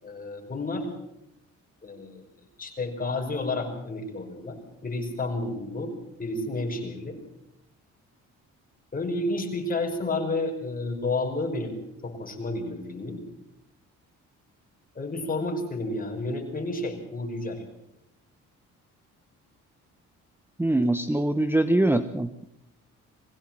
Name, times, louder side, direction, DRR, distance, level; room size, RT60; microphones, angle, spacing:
voice 1, 0.0-0.9 1.8-2.2 2.6-5.9 6.2-7.2 8.9-11.8 12.0-13.2 15.0-17.6, left 2 dB, 30° left, 2 dB, 5.5 m, -31 dB
voice 2, 20.6-22.4, right 1 dB, 5° right, 11 dB, 0.9 m, -23 dB
22.0 x 16.0 x 7.7 m, 0.83 s
cardioid pair, 90°, 30 cm